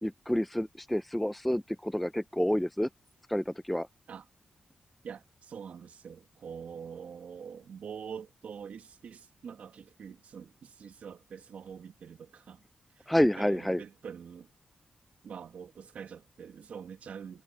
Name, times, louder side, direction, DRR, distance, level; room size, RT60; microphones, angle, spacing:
voice 1, 0.0-2.9 3.3-3.9 13.1-13.8, equal, 5° left, 0.4 m, -28 dB
voice 2, 5.0-12.6 13.0-14.5 15.2-17.4, right 7 dB, 70° right, 1.6 m, -45 dB
wide cardioid pair, 140°, 3 cm